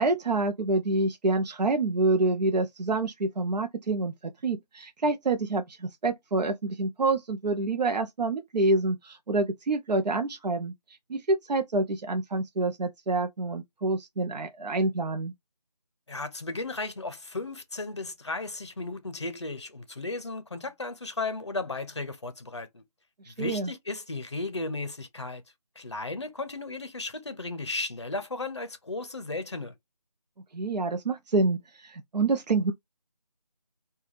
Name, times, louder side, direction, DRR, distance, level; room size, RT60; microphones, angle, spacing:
voice 1, 0.0-4.1 4.4-10.7 11.1-15.3 23.2-23.7 30.5-32.7, right 2 dB, 85° right, 0.5 m, -27 dB
voice 2, 16.1-22.8 23.4-25.4 25.8-29.7, left 3 dB, 45° left, 0.6 m, -35 dB
3.2 x 2.2 x 2.4 m
figure-of-eight pair, 175°, 21 cm